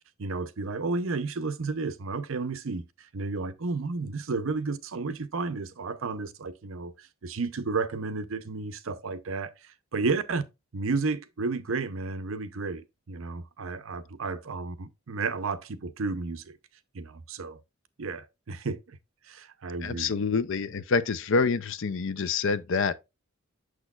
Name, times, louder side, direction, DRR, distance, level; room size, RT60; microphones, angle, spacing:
voice 1, 0.2-10.4 10.7-16.6 16.9-17.6 18.0-19.0 19.2-20.1, right 4 dB, 70° right, 0.7 m, -32 dB
voice 2, 19.8-22.9, left 4 dB, 65° left, 0.5 m, -27 dB
6.6 x 6.2 x 2.4 m
head